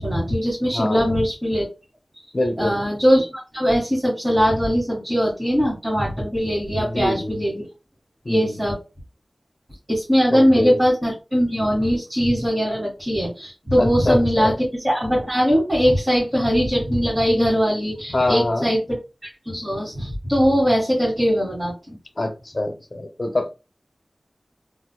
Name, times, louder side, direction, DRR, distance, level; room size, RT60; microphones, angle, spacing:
voice 1, 0.0-1.7 2.6-7.7 8.3-8.8 9.9-19.0 19.4-22.0, equal, 25° right, 1.7 m, -21 dB
voice 2, 0.7-1.1 2.3-2.8 6.8-7.4 8.2-8.6 10.3-10.8 13.8-14.5 18.1-18.7 22.2-23.5, left 2 dB, 50° left, 0.7 m, -25 dB
3.8 x 2.4 x 2.2 m
wide cardioid pair, 75°, 0 cm